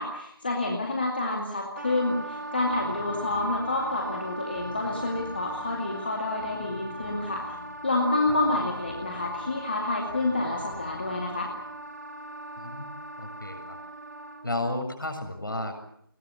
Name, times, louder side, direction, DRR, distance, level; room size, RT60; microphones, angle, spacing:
voice 1, 0.0-7.4 7.8-11.5, left 2 dB, 25° left, 0 dB, 2.3 m, -28 dB
Wind instrument woodwind instrument, 1.8-14.7, right 1 dB, 45° right, 3.3 m, -40 dB
sound 1, 2.6-11.9, left 1 dB, 40° left, 4.5 m, -47 dB
voice 2, 12.6-12.9 13.2-13.8 14.4-15.8, left 1 dB, 60° left, 5 dB, 7.3 m, -33 dB
21.5 x 21.0 x 8.4 m, 0.72 s
figure-of-eight pair, 175°, 13 cm